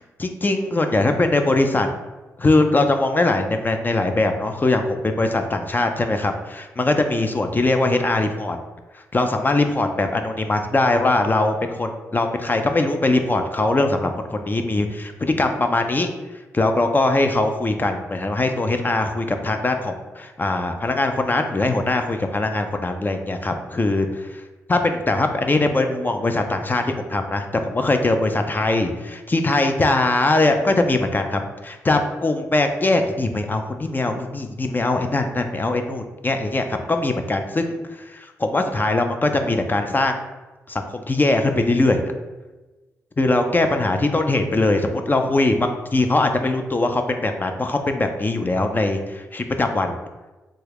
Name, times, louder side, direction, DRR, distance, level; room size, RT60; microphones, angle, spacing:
voice 1, 0.2-1.9 2.4-8.6 8.9-16.1 16.5-24.4 24.7-40.2 40.7-42.0 43.2-50.0, left 2 dB, 30° left, 5 dB, 0.4 m, -21 dB
3.1 x 2.3 x 3.3 m, 1.2 s
supercardioid pair, 45°, 6 cm